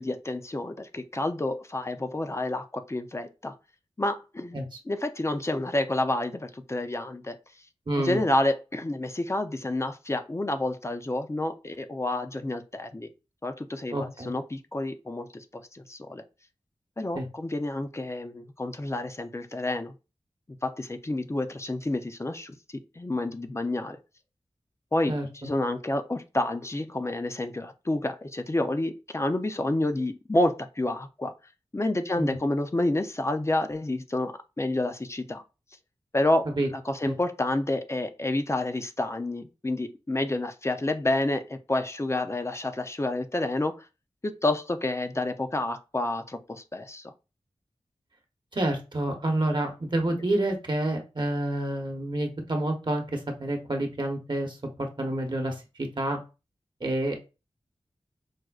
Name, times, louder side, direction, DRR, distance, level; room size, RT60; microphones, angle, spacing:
voice 1, 0.0-3.5 4.0-4.6 4.9-7.4 8.0-13.1 13.4-16.2 17.0-19.9 20.6-22.5 23.0-24.0 24.9-25.1 25.4-31.3 31.7-35.4 36.1-43.8 44.2-47.1, left 2 dB, 25° left, 7 dB, 0.5 m, -29 dB
voice 2, 7.9-8.2 13.9-14.3 17.1-17.3 25.1-25.5 32.2-32.4 36.6-36.7 37.1-37.2 48.5-54.6 55.0-56.2 56.8-57.2, right 1 dB, 45° right, 2 dB, 0.9 m, -28 dB
4.8 x 2.1 x 2.3 m, 0.29 s
wide cardioid pair, 55°, 11 cm